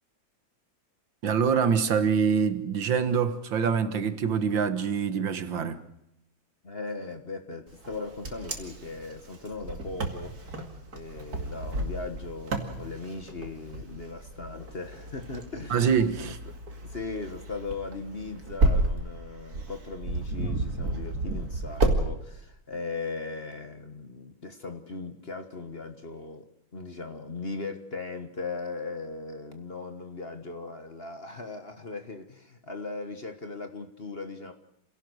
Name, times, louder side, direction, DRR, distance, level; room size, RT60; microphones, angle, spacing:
voice 1, 1.2-5.8 15.7-16.4, right 6 dB, 70° right, 2.1 m, -25 dB
voice 2, 6.6-10.5 10.9-15.8 16.2-16.3 16.8-26.4 26.7-34.5, left 3 dB, 35° left, 1.5 m, -38 dB
Wind, 7.8-22.0, right 2 dB, 50° right, 2.8 m, -31 dB
28.0 x 17.0 x 6.4 m
omnidirectional pair, 2.2 m